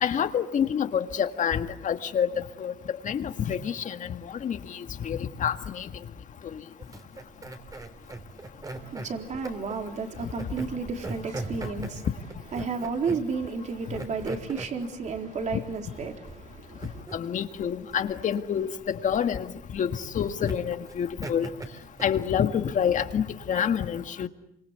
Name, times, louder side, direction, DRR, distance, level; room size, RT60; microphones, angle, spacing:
voice 1, 0.0-2.3 2.6-2.7 3.0-5.9 6.5-6.6 17.1-19.5 19.7-21.5 22.0-24.3, left 8 dB, 50° left, 1.9 m, -27 dB
sound 1, 6.8-22.9, right 2 dB, 20° right, 3.4 m, -40 dB
voice 2, 8.7-12.1 12.5-17.0, right 4 dB, 45° right, 4.0 m, -32 dB
27.5 x 25.0 x 8.3 m
cardioid pair, 110°, 17 cm